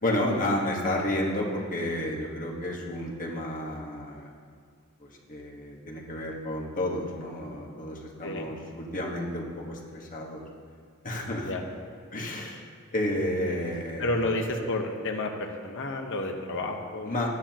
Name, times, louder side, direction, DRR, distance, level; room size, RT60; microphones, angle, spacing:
voice 1, 0.0-4.3 5.0-10.4 11.0-11.5 12.1-12.6 12.9-14.1 17.0-17.3, left 1 dB, 35° left, -2 dB, 1.5 m, -31 dB
voice 2, 14.0-15.3 15.6-17.1, left 2 dB, 60° left, 2 dB, 1.1 m, -30 dB
13.0 x 9.7 x 3.0 m, 2.1 s
head